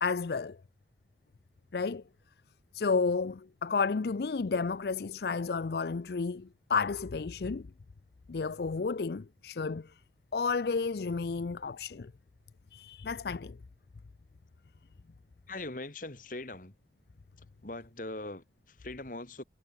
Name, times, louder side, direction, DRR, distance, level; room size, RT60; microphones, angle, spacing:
voice 1, 0.0-0.6 1.7-2.0 2.7-7.7 8.3-10.0 10.3-12.1 12.7-13.6, left 4 dB, 65° left, 0.5 m, -31 dB
voice 2, 15.5-16.8 17.4-19.4, left 2 dB, 50° left, 2.2 m, -41 dB
head